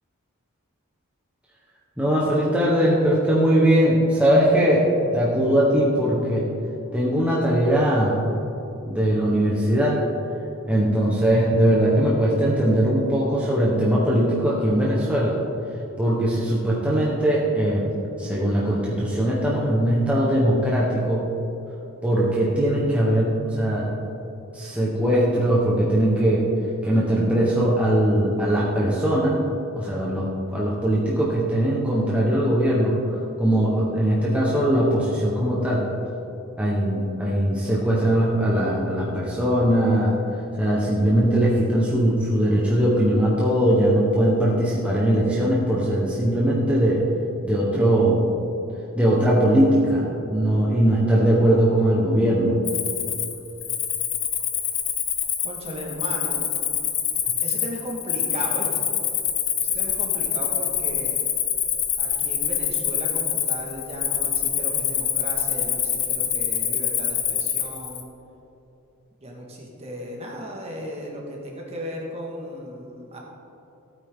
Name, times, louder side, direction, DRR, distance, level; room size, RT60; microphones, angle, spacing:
voice 1, 2.0-6.5 6.9-8.2 8.9-10.0 10.6-15.4 16.0-17.9 18.2-21.3 22.0-23.9 24.5-26.5 26.8-29.4 29.7-33.0 33.4-35.9 36.6-40.1 40.6-47.1 47.4-48.2 48.9-52.5 57.3-57.4, right 1 dB, 5° right, -6 dB, 1.3 m, -20 dB
Cricket, 52.7-68.0, left 9 dB, 65° left, 1.3 m, -25 dB
voice 2, 55.4-56.5 57.4-58.9 59.6-61.2 62.0-68.1 69.2-73.2, equal, 30° right, -2 dB, 1.9 m, -36 dB
15.5 x 8.9 x 3.8 m, 3.0 s
head